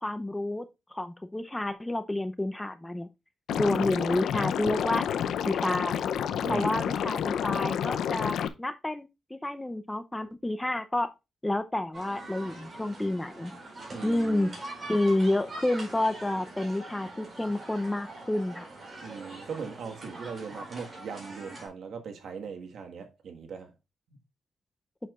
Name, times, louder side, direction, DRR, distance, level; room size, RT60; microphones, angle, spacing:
voice 1, 0.0-3.1 3.6-5.1 5.4-6.0 6.5-11.1 11.4-13.5 14.0-14.5 14.9-18.7, left 1 dB, 10° left, 0.6 m, -29 dB
Liquid, 3.5-8.5, left 9 dB, 90° left, 0.6 m, -29 dB
voice 2, 6.4-6.8 13.9-14.5 19.0-23.7 24.1-24.2, right 5 dB, 75° right, 1.5 m, -39 dB
sound 1, 11.9-21.7, right 2 dB, 35° right, 4.5 m, -43 dB
8.3 x 6.5 x 2.4 m
cardioid pair, 105°, 0 cm